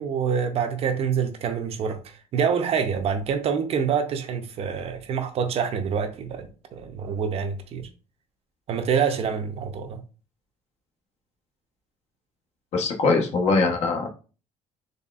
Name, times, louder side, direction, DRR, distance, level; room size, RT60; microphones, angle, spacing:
voice 1, 0.0-7.9 8.7-10.0, right 7 dB, 45° right, 0.5 m, -26 dB
voice 2, 12.7-14.1, left 3 dB, 50° left, 0.9 m, -22 dB
4.0 x 3.3 x 2.3 m
cardioid pair, 145°, 14 cm